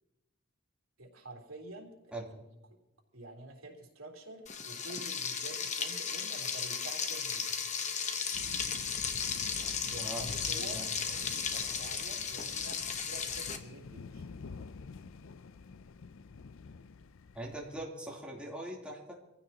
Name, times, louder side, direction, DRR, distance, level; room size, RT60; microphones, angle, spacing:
voice 1, 1.0-2.1 2.7-2.8 3.1-7.7 9.8-14.3, right 2 dB, 85° right, 0 dB, 3.5 m, -48 dB
Frying (food), 4.5-13.6, left 6 dB, 35° left, 1.1 m, -35 dB
sound 1, 8.3-17.8, left 4 dB, 70° left, 0.5 m, -48 dB
voice 2, 17.3-19.3, right 1 dB, 5° right, -3 dB, 3.4 m, -41 dB
25.5 x 15.5 x 3.0 m, 0.98 s
head